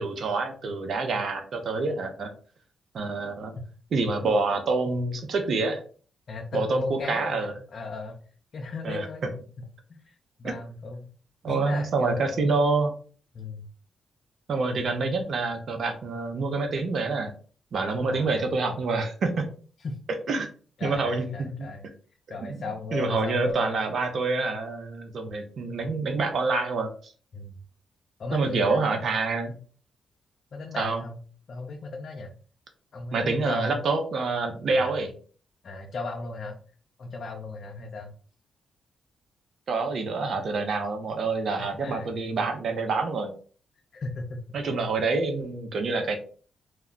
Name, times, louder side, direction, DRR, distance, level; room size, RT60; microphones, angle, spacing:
voice 1, 0.0-2.3 2.9-3.5 3.9-5.8 6.5-7.5 8.8-9.0 10.4-10.5 11.4-12.9 14.5-17.3 17.7-19.5 20.3-20.5 20.8-21.7 22.4-22.6 22.9-27.1 28.3-29.5 30.8-31.0 33.1-35.1 39.7-43.3 44.5-46.2, right 3 dB, 65° right, 5 dB, 0.6 m, -27 dB
voice 2, 6.3-8.2 8.5-9.2 9.6-11.1 11.5-12.7 13.3-13.7 18.1-18.5 19.8-20.0 20.8-21.9 22.3-23.8 27.3-27.6 28.2-29.0 30.5-31.2 31.5-32.3 32.9-33.8 34.7-35.0 35.6-36.6 37.0-38.1 41.6-42.1 43.9-44.8, left 3 dB, 60° left, 1 dB, 0.5 m, -36 dB
2.3 x 2.2 x 3.7 m, 0.41 s
cardioid pair, 80°, 0 cm